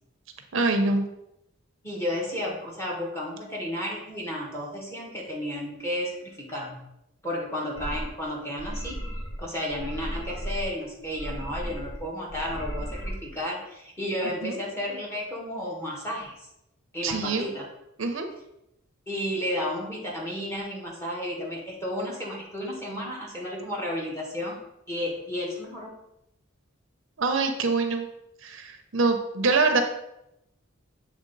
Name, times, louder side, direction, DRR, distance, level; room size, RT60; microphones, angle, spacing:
voice 1, 0.5-1.1 14.4-14.6 17.0-17.5 18.0-18.3 27.2-28.1 28.4-29.8, right 3 dB, 65° right, 6 dB, 0.6 m, -24 dB
voice 2, 1.8-6.8 7.2-9.0 9.4-16.4 16.9-17.7 19.1-24.6 24.9-26.0, left 1 dB, 10° left, -3 dB, 1.2 m, -32 dB
sound 1, 7.8-8.1 8.6-9.4 9.7-10.7 11.0-12.0 12.3-13.1, equal, 85° left, 1.7 m, -35 dB
7.4 x 3.5 x 3.9 m, 0.84 s
head